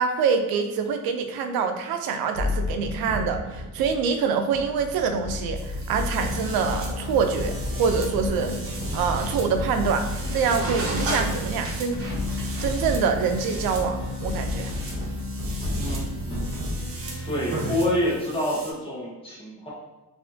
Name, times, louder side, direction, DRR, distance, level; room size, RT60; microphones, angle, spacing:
voice 1, 0.0-8.5 8.9-12.0 12.6-14.7, right 6 dB, 90° right, 6 dB, 0.6 m, -25 dB
sound 1, 2.3-17.6, left 2 dB, 20° right, 1.0 m, -33 dB
sound 2, 5.6-18.7, right 2 dB, 40° right, 0.7 m, -37 dB
sound 3, 6.1-18.0, left 1 dB, 35° left, 1.4 m, -34 dB
voice 2, 15.8-16.5 17.2-19.7, left 1 dB, 15° left, -7 dB, 1.2 m, -27 dB
4.1 x 2.7 x 2.7 m, 1.1 s
cardioid pair, 175°, 35 cm